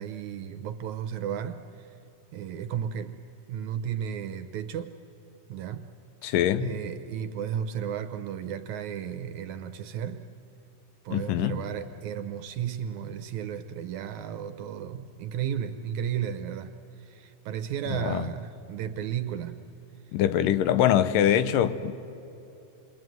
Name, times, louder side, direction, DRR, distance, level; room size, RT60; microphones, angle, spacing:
voice 1, 0.0-2.0 2.3-3.2 3.5-5.0 5.5-5.9 6.2-6.3 6.6-10.3 11.1-19.6, right 9 dB, 70° right, 2.1 m, -34 dB
voice 2, 6.2-6.8 11.1-11.6 17.9-18.3 20.1-21.9, left 10 dB, 90° left, 2.5 m, -23 dB
28.5 x 22.0 x 9.3 m
omnidirectional pair, 3.7 m